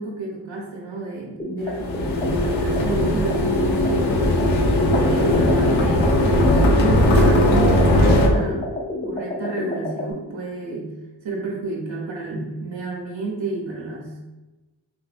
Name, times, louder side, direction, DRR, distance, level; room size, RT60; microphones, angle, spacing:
voice 1, 0.0-4.1 4.6-8.7 9.1-10.9 11.2-14.2, right 3 dB, 80° right, -2 dB, 0.8 m, -30 dB
sound 1, 1.4-10.1, left 1 dB, 20° left, 0.3 m, -30 dB
sound 2, 1.7-8.3, left 1 dB, 90° left, 0.6 m, -18 dB
3.5 x 2.6 x 2.4 m, 1.1 s
wide cardioid pair, 110°, 45 cm